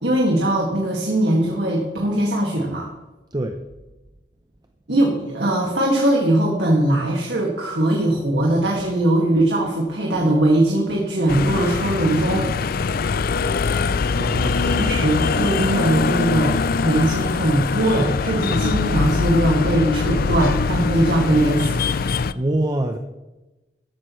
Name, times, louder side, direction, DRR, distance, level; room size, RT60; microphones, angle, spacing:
voice 1, 0.0-2.9 4.9-12.5 14.7-21.9, right 1 dB, 80° right, -2 dB, 2.1 m, -20 dB
sound 1, 11.3-22.3, left 5 dB, 55° left, 0.4 m, -22 dB
voice 2, 14.1-15.0 22.3-23.0, right 1 dB, 25° right, 5 dB, 0.7 m, -25 dB
14.0 x 12.5 x 3.2 m, 1.1 s
head